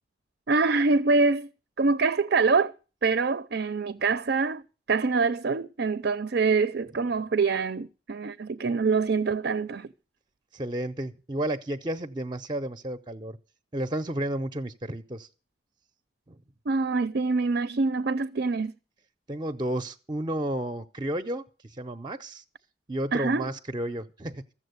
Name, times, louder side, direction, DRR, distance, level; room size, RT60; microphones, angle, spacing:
voice 1, 0.5-1.5 1.8-2.7 3.0-9.9 16.7-18.7 23.1-23.4, right 4 dB, 60° right, 0.6 m, -25 dB
voice 2, 10.5-13.4 13.7-15.3 16.3-16.4 19.3-22.4 22.9-24.4, right 1 dB, 25° right, 0.6 m, -32 dB
14.5 x 7.4 x 7.9 m
head